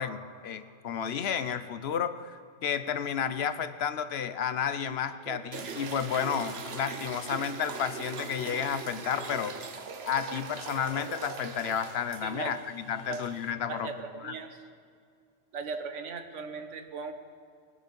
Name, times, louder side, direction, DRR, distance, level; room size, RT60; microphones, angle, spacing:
voice 1, 0.0-9.6 10.0-13.9 14.2-14.3, left 8 dB, 65° left, 12 dB, 0.9 m, -32 dB
sound 1, 5.5-13.5, right 5 dB, 60° right, 1.1 m, -41 dB
voice 2, 12.2-12.6 13.1-13.2 13.7-14.6 15.5-17.1, right 4 dB, 85° right, 7 dB, 1.3 m, -38 dB
20.5 x 9.8 x 5.3 m, 2.3 s
omnidirectional pair, 1.2 m